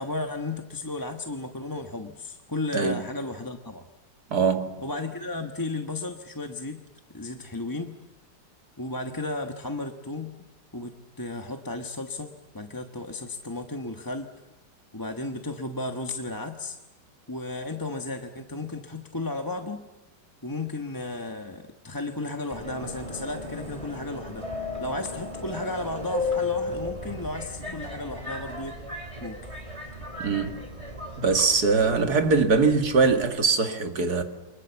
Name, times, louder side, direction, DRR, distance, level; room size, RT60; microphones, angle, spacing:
voice 1, 0.0-3.9 4.8-6.8 7.1-7.9 8.8-10.3 10.7-14.3 14.9-16.8 17.3-19.9 20.4-24.4 24.8-28.8 29.2-29.4, left 2 dB, 15° left, 1.1 m, -34 dB
voice 2, 4.3-4.7 30.2-30.6 31.2-34.2, right 4 dB, 60° right, 2.6 m, -22 dB
Subway metro underground, 22.5-33.2, left 3 dB, 15° right, 4.0 m, -35 dB
29.5 x 25.0 x 7.2 m
omnidirectional pair, 2.0 m